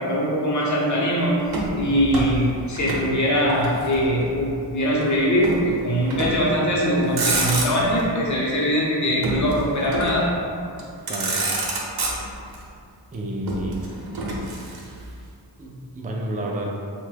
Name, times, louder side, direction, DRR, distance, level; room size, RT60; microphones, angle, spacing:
voice 1, 0.0-1.4 1.8-10.3, equal, 40° left, -4 dB, 0.7 m, -22 dB
Motor vehicle (road), 1.5-3.1 3.4-4.4 5.4-5.7 6.1-6.5 7.0-8.0 9.2-10.3 10.8-10.9 11.1-12.6 13.5-15.1, right 2 dB, 60° right, 0.6 m, -28 dB
voice 2, 13.1-13.8 15.6-16.7, right 1 dB, 20° right, -1 dB, 0.3 m, -30 dB
2.9 x 2.2 x 3.3 m, 2.4 s
wide cardioid pair, 100°, 43 cm